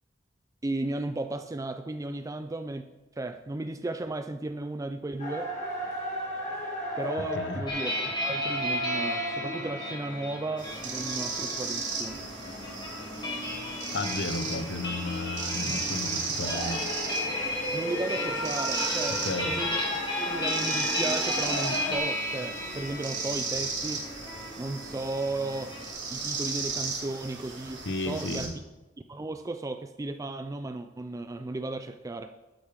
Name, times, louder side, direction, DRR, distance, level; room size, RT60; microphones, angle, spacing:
voice 1, 0.6-2.9 3.2-5.5 7.0-12.2 17.7-24.1 24.6-25.8 26.1-28.5 29.1-32.3, right 2 dB, 20° right, 8 dB, 0.4 m, -35 dB
sound 1, 5.2-22.0, equal, 45° left, 2.5 m, -36 dB
sound 2, 7.7-25.9, left 1 dB, 25° left, 2.2 m, -35 dB
sound 3, 10.6-28.5, right 4 dB, 80° right, 2.7 m, -35 dB
voice 2, 13.9-16.8 19.2-19.6 27.8-28.5, left 2 dB, 70° left, 10 dB, 0.8 m, -33 dB
11.5 x 9.5 x 3.6 m, 1.1 s
head